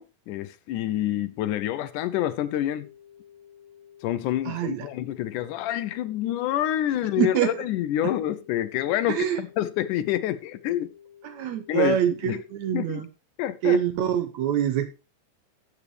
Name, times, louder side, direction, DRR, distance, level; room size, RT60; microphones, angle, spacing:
voice 1, 0.0-2.9 4.0-10.9 11.7-12.0 12.2-12.4 12.7-13.0 13.4-13.8, left 12 dB, 80° left, 2.1 m, -27 dB
sound 1, 2.8-12.8, left 9 dB, 45° left, 2.0 m, -52 dB
voice 2, 4.5-4.9 7.2-7.5 9.1-9.4 11.2-13.1 13.6-14.9, right 10 dB, 70° right, 1.8 m, -25 dB
14.0 x 8.2 x 3.3 m
omnidirectional pair, 3.8 m